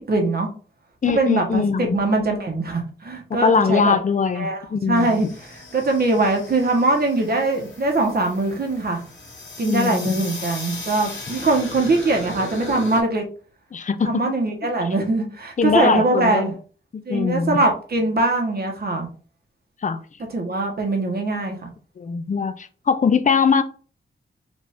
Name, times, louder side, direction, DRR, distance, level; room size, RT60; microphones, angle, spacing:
voice 1, 0.1-0.5 1.1-4.0 4.3-5.3 5.7-9.0 9.6-13.2 14.0-16.5 17.0-19.1 20.3-21.7, right 2 dB, 50° right, 1.2 m, -22 dB
voice 2, 1.0-2.0 3.4-5.2 9.6-10.2 13.7-14.2 15.6-16.5 16.9-17.6 19.8-20.0 22.0-23.6, left 5 dB, 40° left, 0.5 m, -21 dB
sound 1, 4.9-13.0, left 2 dB, 65° left, 2.0 m, -37 dB
5.2 x 2.7 x 3.5 m
wide cardioid pair, 155°, 21 cm